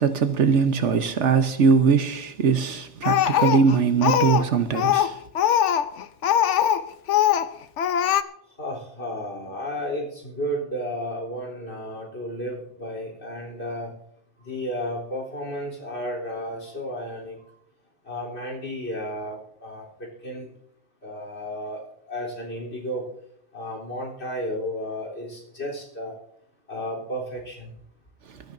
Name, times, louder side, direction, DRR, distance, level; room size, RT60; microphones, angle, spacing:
voice 1, 0.0-5.2, right 6 dB, 85° right, 1.3 m, -21 dB
Speech, 3.0-4.5 4.7-6.8 7.1-7.5 7.8-8.2, left 10 dB, 90° left, 1.0 m, -21 dB
voice 2, 8.5-14.0 14.4-17.6 18.0-20.5 21.0-21.8 22.1-23.0 23.5-26.2 26.7-27.7, equal, 65° left, 4.0 m, -33 dB
23.5 x 13.5 x 2.7 m
omnidirectional pair, 1.2 m